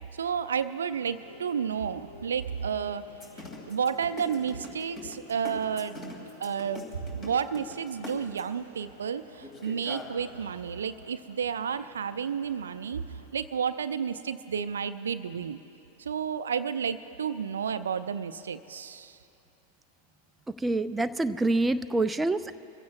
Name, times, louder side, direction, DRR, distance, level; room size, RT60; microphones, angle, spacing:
voice 1, 0.1-3.0 3.4-13.0 13.3-15.6 16.0-19.2, right 7 dB, 70° right, 12 dB, 0.4 m, -31 dB
sound 1, 0.9-13.3, left 2 dB, 80° left, 1.6 m, -52 dB
sound 2, 3.1-8.6 9.4-10.1, left 2 dB, 30° left, 2.6 m, -42 dB
voice 2, 20.5-22.5, right 2 dB, 10° right, 10 dB, 0.4 m, -26 dB
24.5 x 15.5 x 2.4 m, 2.8 s
figure-of-eight pair, 90°, 0 cm